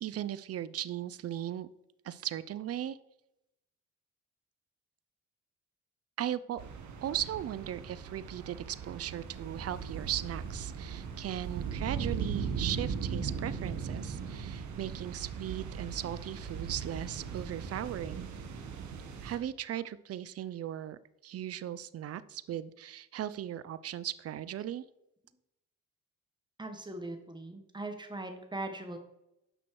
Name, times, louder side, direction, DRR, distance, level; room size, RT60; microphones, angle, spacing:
voice 1, 0.0-1.7 2.0-3.0 6.2-6.6 7.0-18.3 19.2-24.8, right 11 dB, 50° right, 16 dB, 0.6 m, -37 dB
sound 1, 6.6-19.4, right 6 dB, 70° right, 1.4 m, -38 dB
voice 2, 26.6-29.0, right 2 dB, 15° right, 6 dB, 1.6 m, -40 dB
9.1 x 6.0 x 4.8 m, 0.86 s
cardioid pair, 90°, 30 cm